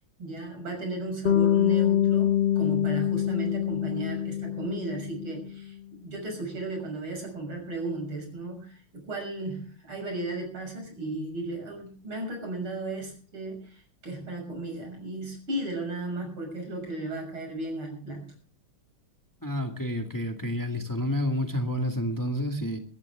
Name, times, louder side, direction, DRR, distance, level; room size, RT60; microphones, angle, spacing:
voice 1, 0.2-18.3, right 2 dB, 75° right, 3 dB, 7.3 m, -35 dB
Bass guitar, 1.2-5.5, left 10 dB, 60° left, 0.6 m, -25 dB
voice 2, 19.4-22.8, left 1 dB, 10° left, 4 dB, 1.7 m, -29 dB
21.5 x 14.5 x 3.6 m, 0.40 s
omnidirectional pair, 2.3 m